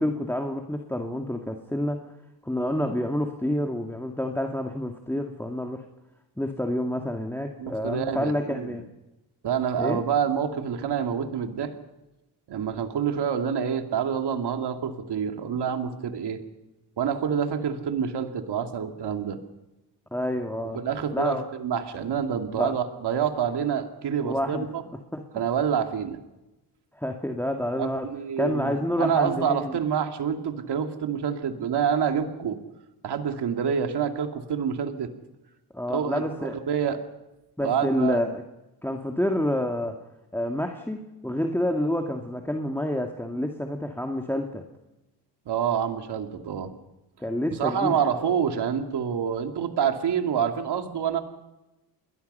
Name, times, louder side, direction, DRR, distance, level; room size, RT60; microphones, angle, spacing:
voice 1, 0.0-2.0 2.4-5.8 6.4-8.9 9.8-10.0 20.1-20.8 21.1-21.4 22.5-22.7 24.2-24.7 25.1-25.2 27.0-28.1 28.4-29.8 35.7-36.6 37.6-38.4 38.8-40.0 40.3-44.6 47.2-48.0, left 1 dB, 5° left, 3 dB, 2.1 m, -28 dB
voice 2, 7.6-8.7 9.4-11.7 12.5-16.4 17.0-19.4 20.7-24.8 25.3-26.2 27.8-32.6 33.0-35.1 35.9-37.0 37.6-38.2 45.5-46.7 47.5-51.2, right 7 dB, 75° right, 5 dB, 2.6 m, -27 dB
28.5 x 21.0 x 5.6 m, 1.0 s
cardioid pair, 75°, 41 cm